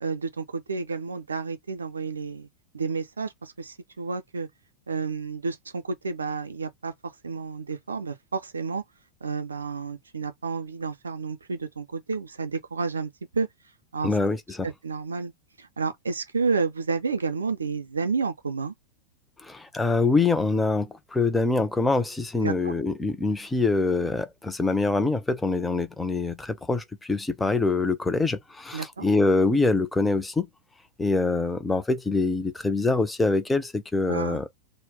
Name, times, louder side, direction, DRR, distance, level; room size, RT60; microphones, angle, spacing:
voice 1, 0.0-2.5 2.7-4.5 4.9-6.9 7.2-8.8 9.2-13.5 13.9-14.1 14.6-15.3 15.6-18.7 22.4-22.7 28.7-29.1 34.1-34.4, right 4 dB, 75° right, 0.4 m, -30 dB
voice 2, 14.0-14.7 19.4-30.5 31.0-34.5, left 3 dB, 10° left, 0.4 m, -24 dB
2.2 x 2.0 x 3.6 m
figure-of-eight pair, 90°, 0 cm